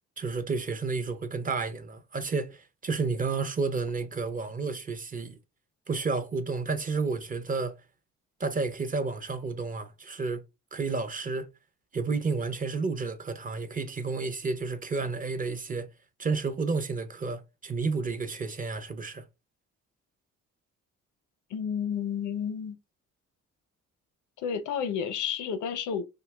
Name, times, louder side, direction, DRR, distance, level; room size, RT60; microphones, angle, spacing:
voice 1, 0.2-5.4 5.9-7.8 8.4-10.4 10.7-11.5 11.9-15.9 16.2-19.3, right 4 dB, 30° right, 0.5 m, -31 dB
voice 2, 21.5-22.8 24.4-26.0, left 7 dB, 75° left, 0.6 m, -31 dB
2.7 x 2.2 x 3.3 m
cardioid pair, 90°, 30 cm